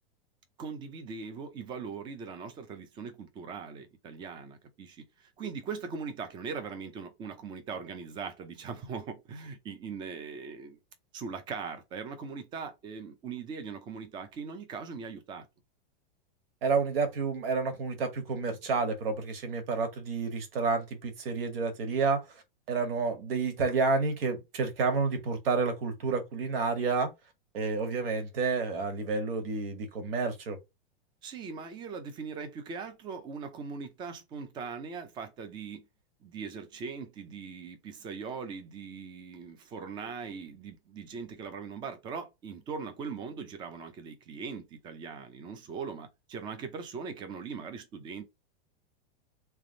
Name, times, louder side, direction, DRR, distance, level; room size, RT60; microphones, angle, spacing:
voice 1, 0.6-10.8 11.1-15.5 31.2-35.8 36.2-48.2, right 5 dB, 15° right, 0.5 m, -40 dB
voice 2, 16.6-22.4 22.7-27.1 27.5-30.6, right 4 dB, 70° right, 1.7 m, -30 dB
3.4 x 3.3 x 3.9 m
supercardioid pair, 165°, 30 cm